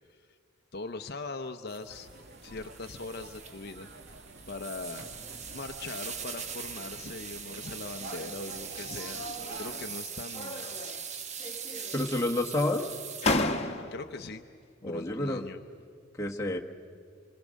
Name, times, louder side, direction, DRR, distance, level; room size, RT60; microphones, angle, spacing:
voice 1, 0.7-2.1 2.4-3.9 4.5-5.1 5.5-10.8 13.9-14.4 14.8-15.6, left 3 dB, 55° left, 7 dB, 0.7 m, -41 dB
sound 1, 1.7-13.3, right 7 dB, 35° right, 1.0 m, -42 dB
sound 2, 1.9-9.9, right 1 dB, 60° right, 1.7 m, -47 dB
sound 3, 9.4-10.0 10.3-11.1 11.4-12.2 12.8-12.9 13.2-14.2, left 2 dB, 35° left, 1.2 m, -32 dB
voice 2, 11.9-13.0 14.8-15.4 16.1-16.6, left 1 dB, 15° left, 0 dB, 1.3 m, -29 dB
26.5 x 26.0 x 6.4 m, 2.2 s
head